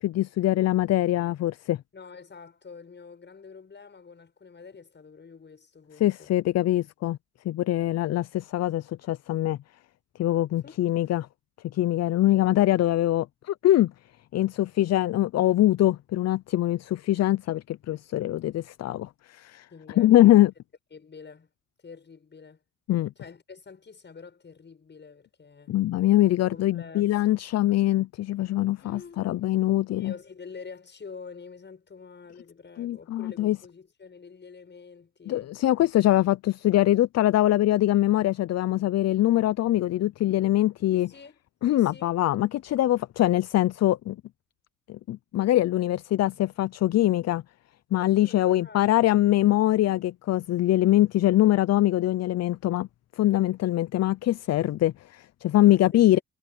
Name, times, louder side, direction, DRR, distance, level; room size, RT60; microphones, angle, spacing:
voice 1, 0.0-1.8 6.0-7.2 7.4-9.6 10.2-11.3 11.7-13.9 14.3-19.7 20.0-20.5 22.9-23.1 25.7-30.1 32.8-33.6 35.3-41.1 41.6-44.2 44.9-47.4 47.9-52.9 53.2-56.2, left 14 dB, 60° left, 0.5 m, -23 dB
voice 2, 1.9-6.3 10.6-10.8 19.7-20.4 20.9-21.5 21.8-22.6 23.2-25.8 26.2-27.4 28.8-35.6 40.9-41.4 41.7-42.1 48.2-49.0 55.6-56.2, left 5 dB, 35° left, 7.5 m, -47 dB
cardioid pair, 90°, 30 cm